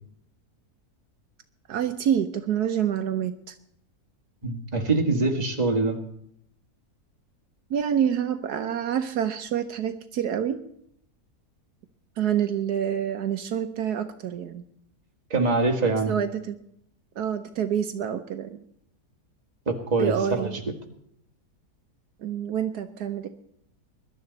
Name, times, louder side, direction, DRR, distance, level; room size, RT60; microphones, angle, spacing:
voice 1, 1.7-3.5 7.7-10.6 12.2-14.6 16.1-16.6 17.2-18.6 20.0-20.6 22.2-23.3, right 9 dB, 75° right, 8 dB, 1.3 m, -27 dB
voice 2, 4.4-6.0 15.3-16.2 19.7-20.5, right 3 dB, 25° right, 2 dB, 1.9 m, -24 dB
21.0 x 12.0 x 4.1 m, 0.70 s
omnidirectional pair, 1.7 m